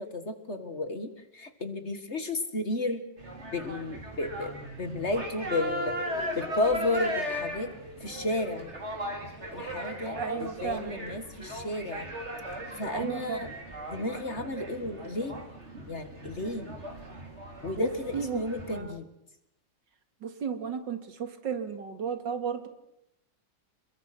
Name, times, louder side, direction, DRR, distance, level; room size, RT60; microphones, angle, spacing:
voice 1, 0.0-3.0 3.5-5.9 6.4-7.7 8.0-8.7 9.5-12.1 12.8-13.5 13.9-15.4 15.9-16.7 17.6-19.1, left 2 dB, 35° left, 9 dB, 2.0 m, -32 dB
sound 1, 3.2-18.8, equal, 35° right, 4.2 m, -37 dB
voice 2, 10.2-11.0 12.9-13.4 17.8-18.4 18.7-19.0 20.2-22.7, right 6 dB, 70° right, 8 dB, 2.7 m, -34 dB
29.0 x 22.0 x 6.0 m, 0.82 s
omnidirectional pair, 2.0 m